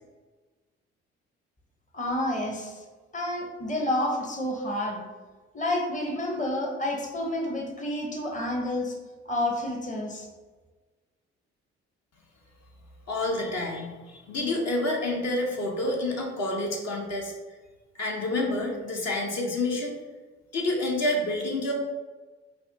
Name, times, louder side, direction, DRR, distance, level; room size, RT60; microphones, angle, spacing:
voice 1, 1.9-2.8 3.1-5.0 5.5-8.9 9.3-10.3, left 1 dB, 20° left, 1 dB, 0.8 m, -29 dB
voice 2, 13.1-17.3 17.9-20.0 20.5-21.7, left 2 dB, 50° left, -1 dB, 0.8 m, -28 dB
5.6 x 2.1 x 2.6 m, 1.3 s
hypercardioid pair, 40°, 34 cm